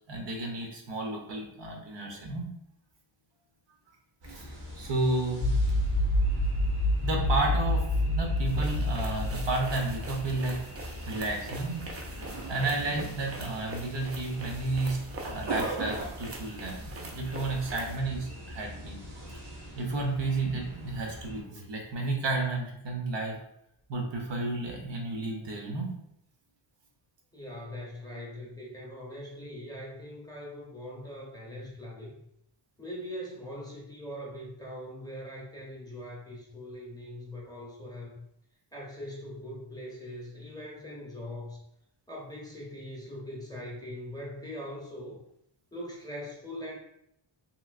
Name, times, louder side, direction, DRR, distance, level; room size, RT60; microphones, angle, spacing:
voice 1, 0.1-2.5 4.3-5.5 7.0-10.6 11.1-11.8 12.2-15.0 15.2-19.0 19.8-23.4 23.9-25.9, right 2 dB, 60° right, 1 dB, 0.7 m, -32 dB
sound 1, 4.2-21.4, right 1 dB, 90° right, 1.1 m, -41 dB
sound 2, 5.4-10.2, left 1 dB, 65° left, 0.6 m, -27 dB
sound 3, 8.5-18.0, right 2 dB, 30° right, 0.4 m, -44 dB
voice 2, 27.3-32.2 32.8-38.2 38.7-41.6 42.1-45.2 45.7-46.8, left 1 dB, 10° left, -4 dB, 0.6 m, -41 dB
3.1 x 2.9 x 2.4 m, 0.76 s
wide cardioid pair, 170°, 50 cm